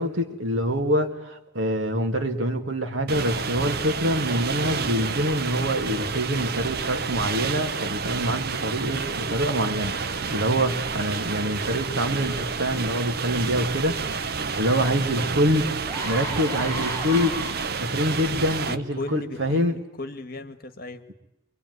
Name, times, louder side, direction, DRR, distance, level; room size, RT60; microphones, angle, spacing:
voice 1, 0.0-14.0 14.6-15.7 16.1-17.4 17.7-19.8, equal, 80° right, 4 dB, 2.6 m, -25 dB
sound 1, 3.1-18.8, right 5 dB, 50° right, 0.9 m, -30 dB
sound 2, 15.1-15.2 15.7-18.0 18.7-18.9, equal, 10° left, 7.6 m, -34 dB
voice 2, 18.6-21.0, left 2 dB, 50° left, 9 dB, 1.6 m, -36 dB
25.5 x 22.5 x 9.7 m, 0.91 s
head